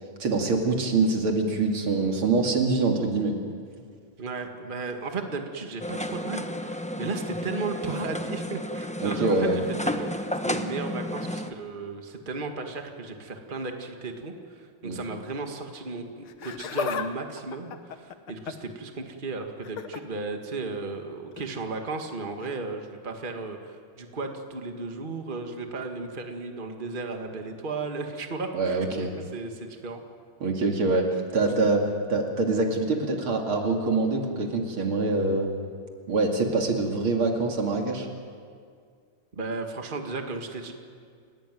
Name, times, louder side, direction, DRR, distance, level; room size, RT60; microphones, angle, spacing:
voice 1, 0.2-3.3 9.0-9.6 14.8-15.0 28.5-29.1 30.4-31.1 31.3-31.8 32.1-35.5 36.1-38.1, right 3 dB, 75° right, 2 dB, 3.4 m, -24 dB
voice 2, 4.2-28.9 29.3-30.0 39.3-40.7, right 3 dB, 25° right, 4 dB, 1.9 m, -35 dB
sound 1, 5.8-11.5, left 1 dB, 10° left, 0.3 m, -32 dB
Laughter, 16.3-17.1 17.4-18.7 19.6-20.0 21.3-21.5 22.4-22.5, left 7 dB, 80° left, 2.0 m, -33 dB
30.0 x 17.5 x 9.3 m, 2.2 s
omnidirectional pair, 2.3 m